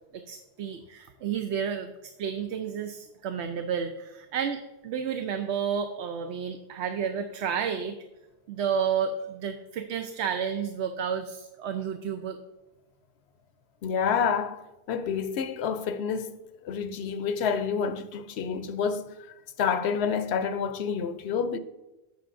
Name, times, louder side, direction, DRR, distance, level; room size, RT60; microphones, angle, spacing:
voice 1, 0.1-8.0 8.5-12.4, right 7 dB, 80° right, 0.9 m, -31 dB
voice 2, 13.8-16.4 16.6-19.1 19.6-21.6, left 6 dB, 75° left, 0.8 m, -28 dB
15.0 x 5.8 x 2.5 m
omnidirectional pair, 1.1 m